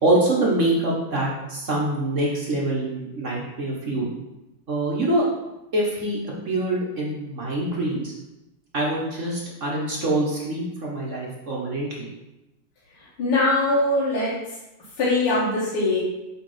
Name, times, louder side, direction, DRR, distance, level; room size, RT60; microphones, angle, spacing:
voice 1, 0.0-4.1 4.7-5.2 5.7-6.2 6.4-8.1 8.7-12.1, right 1 dB, 40° right, -3 dB, 1.2 m, -25 dB
voice 2, 13.0-14.3 15.0-16.0, left 2 dB, 80° left, -9 dB, 2.5 m, -22 dB
8.1 x 3.6 x 4.9 m, 0.97 s
omnidirectional pair, 2.4 m